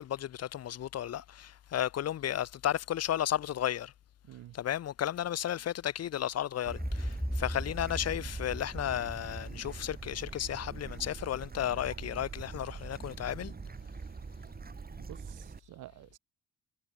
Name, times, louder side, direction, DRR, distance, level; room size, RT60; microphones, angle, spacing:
voice 1, 0.0-3.9 4.5-13.5, left 11 dB, 55° left, 1.0 m, -33 dB
voice 2, 4.2-4.6 15.0-16.2, right 15 dB, 85° right, 4.8 m, -50 dB
sound 1, 6.6-10.5, equal, ahead, 0.5 m, -38 dB
Bird / Stream, 6.7-15.6, right 4 dB, 30° right, 3.4 m, -44 dB
cardioid pair, 90°, 30 cm